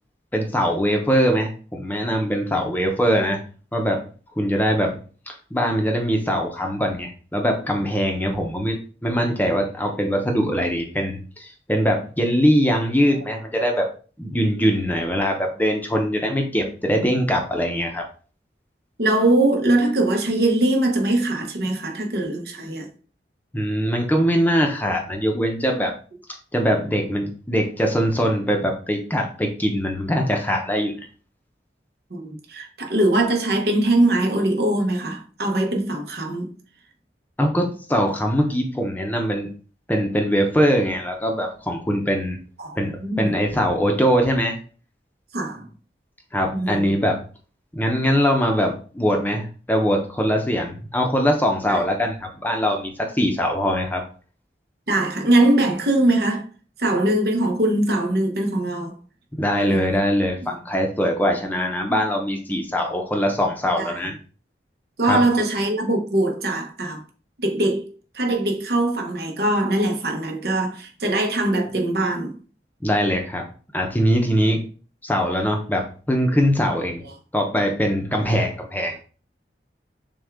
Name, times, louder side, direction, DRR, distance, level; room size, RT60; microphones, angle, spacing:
voice 1, 0.3-3.4 3.7-4.0 4.4-5.0 5.3-13.9 14.2-18.0 23.5-25.9 26.5-31.0 37.4-39.5 39.9-42.4 42.8-44.6 46.3-47.2 47.7-54.0 59.3-64.2 65.0-65.2 72.8-73.5 73.7-74.6 75.0-77.0 77.3-79.0, equal, 10° left, 0.7 m, -22 dB
voice 2, 19.0-22.9 32.1-36.5 42.6-43.4 45.3-45.7 46.5-46.9 51.7-51.8 54.9-56.5 56.8-58.9 59.7-59.8 63.8-64.1 65.0-67.0 67.4-72.3, right 1 dB, 65° right, 0.9 m, -22 dB
6.3 x 2.3 x 3.5 m
head